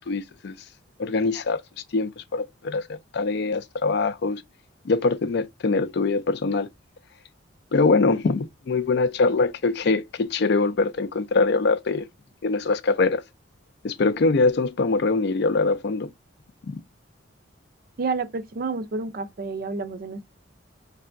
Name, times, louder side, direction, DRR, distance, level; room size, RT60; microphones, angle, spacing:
voice 1, 0.1-0.5 1.0-1.6 1.9-4.4 4.9-6.7 7.7-12.1 12.4-13.2 13.8-16.1 16.7-16.8, left 3 dB, 55° left, 0.4 m, -23 dB
voice 2, 18.0-20.2, right 4 dB, 45° right, 0.4 m, -29 dB
4.6 x 3.3 x 2.4 m
head